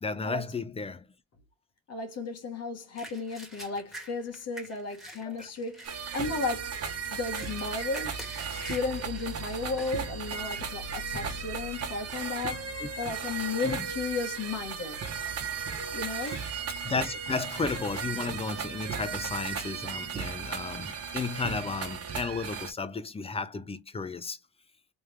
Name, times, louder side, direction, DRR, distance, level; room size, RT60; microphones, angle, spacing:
voice 1, 0.0-1.1 5.2-5.5 12.8-12.9 13.6-13.9 16.2-16.5 16.8-24.4, left 4 dB, 20° left, 0.7 m, -34 dB
voice 2, 1.9-6.8 7.1-15.1 15.9-16.4, left 4 dB, 55° left, 1.4 m, -34 dB
sound 1, 3.0-10.0 10.5-10.6 11.2-11.5 12.3-12.4 12.7-13.9 14.2-14.8 15.1-15.2 16.1-16.7 17.1-20.2, right 1 dB, ahead, 1.8 m, -48 dB
sound 2, 5.8-22.7, right 6 dB, 55° right, 1.1 m, -36 dB
3.5 x 3.1 x 3.3 m
cardioid pair, 90°, 30 cm